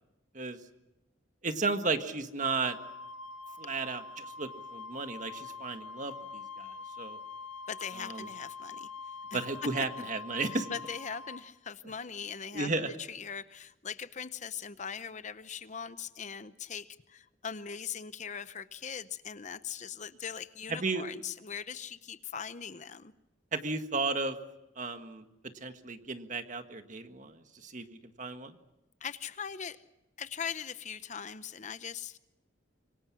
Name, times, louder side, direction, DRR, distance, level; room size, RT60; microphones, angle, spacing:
voice 1, 1.4-2.8 3.6-7.2 8.1-8.2 9.3-10.7 12.5-12.9 20.7-21.0 23.5-24.4 24.7-25.2 25.6-28.6, right 3 dB, 40° right, 7 dB, 1.7 m, -34 dB
Wind instrument woodwind instrument, 2.4-11.4, left 4 dB, 70° left, 2.3 m, -44 dB
voice 2, 7.7-8.9 9.3-9.4 10.5-23.1 29.0-29.8 30.2-32.2, left 7 dB, 40° left, 13 dB, 0.8 m, -40 dB
26.0 x 25.0 x 6.2 m, 0.97 s
head